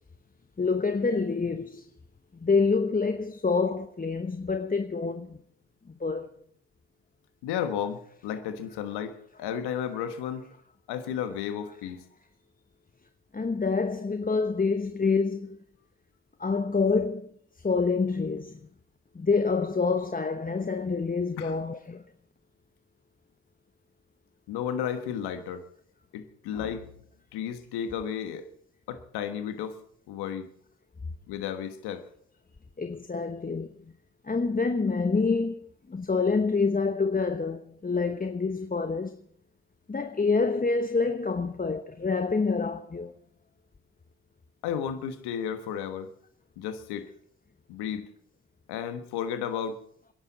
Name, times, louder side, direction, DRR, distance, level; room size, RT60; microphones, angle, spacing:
voice 1, 0.6-1.9 2.4-5.4 5.9-6.3 13.3-15.6 16.4-17.3 17.6-18.6 19.1-22.0 32.8-33.7 34.2-39.2 39.9-43.1, left 4 dB, 20° left, 1.0 m, -27 dB
voice 2, 7.4-10.5 10.9-12.0 21.4-21.5 24.5-25.6 26.1-26.9 27.3-28.5 28.9-29.8 30.1-30.5 31.3-32.0 44.6-46.1 46.6-47.1 47.7-48.1 48.7-49.8, left 8 dB, 85° left, 1.4 m, -33 dB
28.0 x 11.0 x 4.1 m
hypercardioid pair, 45°, 38 cm